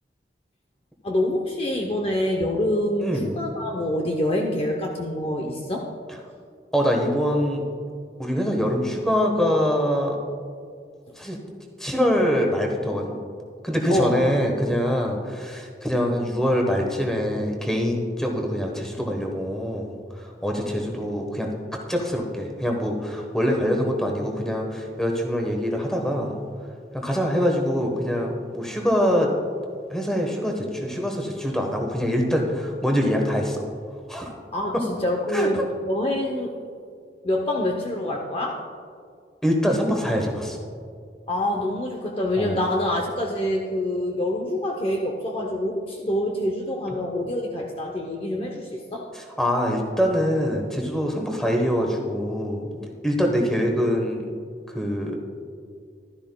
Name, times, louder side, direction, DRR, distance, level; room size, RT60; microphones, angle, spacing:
voice 1, 1.0-5.9 13.9-14.3 34.5-36.5 37.2-38.7 41.3-49.1, left 1 dB, 30° left, 1 dB, 0.7 m, -26 dB
voice 2, 3.0-3.3 6.7-7.6 8.2-10.2 11.2-11.4 11.8-13.1 13.6-19.9 20.2-21.5 21.9-26.3 26.9-29.3 29.9-33.6 34.1-34.3 34.7-34.8 35.3-35.5 39.4-40.6 42.4-42.6 49.1-52.7 53.0-54.2 54.7-55.2, equal, 5° left, 1 dB, 1.1 m, -24 dB
14.5 x 12.0 x 2.3 m, 2.2 s
head